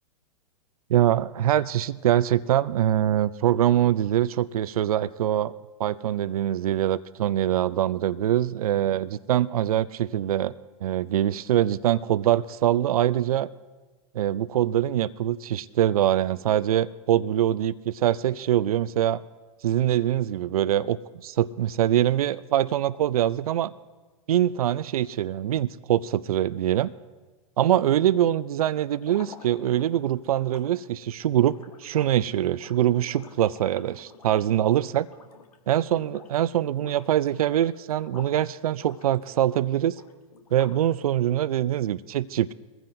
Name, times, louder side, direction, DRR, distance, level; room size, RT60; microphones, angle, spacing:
voice 1, 0.9-5.5 5.8-10.5 10.8-13.5 14.1-19.2 19.6-23.7 24.3-26.9 27.6-35.1 35.7-40.0 40.5-42.5, right 11 dB, 80° right, 17 dB, 0.4 m, -24 dB
sound 1, 29.0-35.6 35.9-36.4 36.7-38.4 38.7-40.9, left 5 dB, 90° left, 1.5 m, -49 dB
22.0 x 15.0 x 2.6 m, 1.3 s
hypercardioid pair, 120°, 19 cm